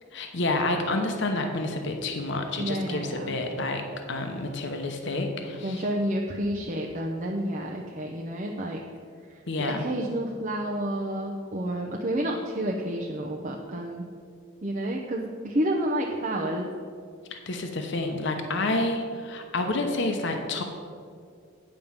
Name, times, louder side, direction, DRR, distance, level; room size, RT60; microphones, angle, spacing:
voice 1, 0.1-5.8 9.5-9.8 17.3-20.6, left 2 dB, 65° left, 4 dB, 0.9 m, -29 dB
voice 2, 2.6-3.4 5.6-8.8 9.3-14.0 14.6-16.7, right 1 dB, 40° right, 0 dB, 0.7 m, -30 dB
9.3 x 5.2 x 7.2 m, 2.2 s
head